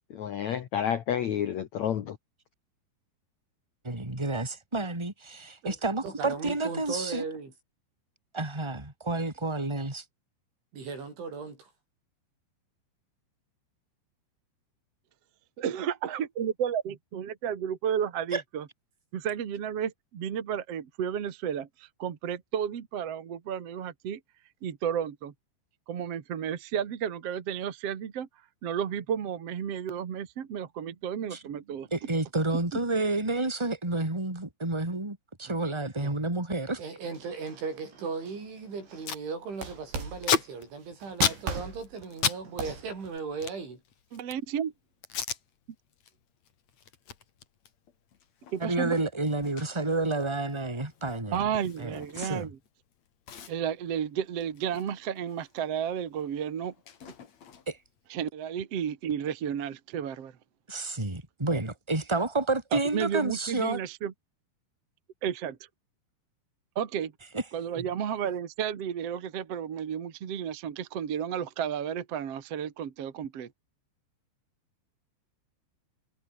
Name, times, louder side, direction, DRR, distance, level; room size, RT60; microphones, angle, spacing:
voice 1, 0.1-2.2, left 9 dB, 75° left, 1.6 m, -30 dB
voice 2, 3.8-7.2 8.3-10.0 18.3-18.4 31.3-31.4 31.9-36.8 48.6-51.4 51.8-52.5 57.7-57.8 60.7-63.8 67.3-67.4, right 2 dB, 5° right, 3.9 m, -30 dB
voice 3, 6.0-7.5 10.7-11.7 35.5-35.6 36.0-36.2 36.8-43.8, right 5 dB, 80° right, 10.0 m, -37 dB
voice 4, 15.6-18.7 19.1-24.2 24.6-25.3 25.9-28.3 28.6-31.9 32.7-32.8 44.1-44.7 48.5-49.0 51.3-52.6 53.5-56.7 58.1-60.3 62.7-64.1 65.2-65.6 66.8-67.1 67.5-73.5, right 8 dB, 50° right, 2.0 m, -32 dB
sound 1, 37.0-39.1 39.5-40.6 41.0-43.2, right 5 dB, 65° right, 9.3 m, -40 dB
Packing tape duct tape, 38.5-38.6 38.8-39.2 39.6-42.4 42.7-44.5 45.0-45.4 45.9-46.1 46.4-52.7 52.9-53.0 53.3-55.6 55.9-57.9, left 7 dB, 45° left, 3.0 m, -35 dB
omnidirectional pair, 5.3 m